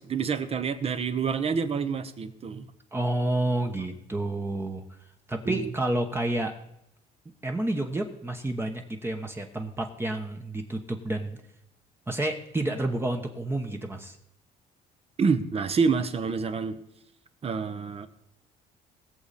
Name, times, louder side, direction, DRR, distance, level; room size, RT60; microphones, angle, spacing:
voice 1, 0.0-2.7 5.4-5.7 15.2-16.8 17.4-18.1, right 5 dB, 35° right, 10 dB, 1.0 m, -27 dB
voice 2, 2.9-4.8 5.3-6.5 7.4-11.4 12.1-14.2, right 1 dB, 15° right, 3 dB, 1.1 m, -29 dB
20.0 x 7.1 x 4.2 m, 0.80 s
cardioid pair, 110°, 17 cm